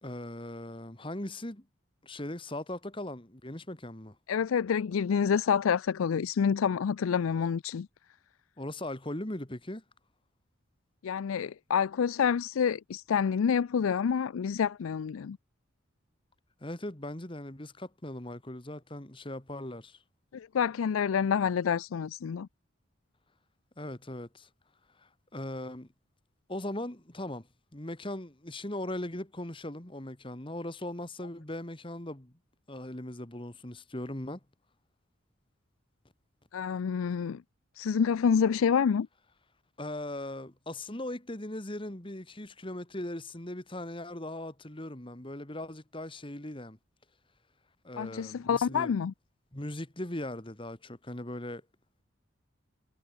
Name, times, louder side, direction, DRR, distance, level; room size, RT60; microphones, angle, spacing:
voice 1, 0.0-1.7 2.0-4.2 8.6-9.8 16.6-20.0 23.8-24.5 25.0-25.9 26.5-27.5 27.7-32.3 32.7-34.4 39.8-46.8 47.8-49.0 49.5-51.6, left 1 dB, 25° left, 2.0 m, -39 dB
voice 2, 4.3-7.9 11.0-15.4 20.3-22.5 36.5-37.4 37.8-39.1 48.0-49.1, left 7 dB, 85° left, 0.4 m, -28 dB
head